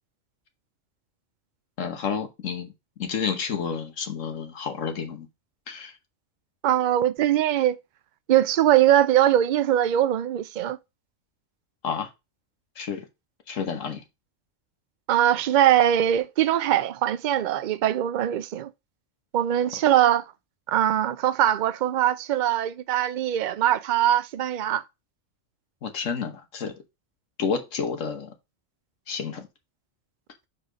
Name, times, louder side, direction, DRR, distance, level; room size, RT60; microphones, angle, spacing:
voice 1, 1.8-2.7 3.0-5.3 5.7-5.9 11.8-12.1 12.8-13.0 13.5-14.0 25.8-26.8 27.4-28.3 29.1-29.5, left 6 dB, 75° left, 1.5 m, -30 dB
voice 2, 6.6-7.8 8.3-10.8 15.1-18.7 19.3-20.2 20.7-24.8, right 11 dB, 65° right, 0.4 m, -21 dB
4.9 x 4.2 x 5.0 m
omnidirectional pair, 1.3 m